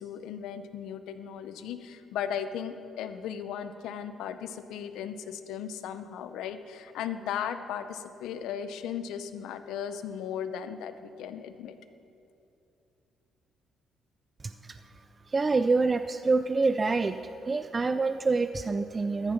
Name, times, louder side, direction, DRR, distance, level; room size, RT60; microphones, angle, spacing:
voice 1, 0.0-11.8, left 8 dB, 90° left, 10 dB, 0.6 m, -36 dB
voice 2, 15.3-17.2 17.5-19.3, right 3 dB, 30° right, 10 dB, 0.3 m, -26 dB
13.5 x 7.3 x 5.8 m, 2.7 s
cardioid pair, 90°, 0 cm